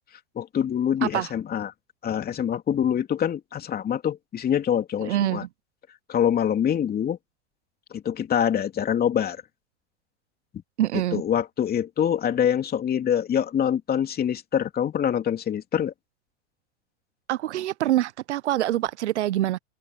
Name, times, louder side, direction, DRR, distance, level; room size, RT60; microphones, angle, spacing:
voice 1, 0.4-1.7 2.0-5.4 6.1-7.2 8.0-9.4 11.1-15.9, left 9 dB, 25° left, 3.1 m, -25 dB
voice 2, 5.0-5.5 10.8-11.2 17.3-19.6, right 13 dB, 75° right, 1.1 m, -25 dB
hypercardioid pair, 105°, 35 cm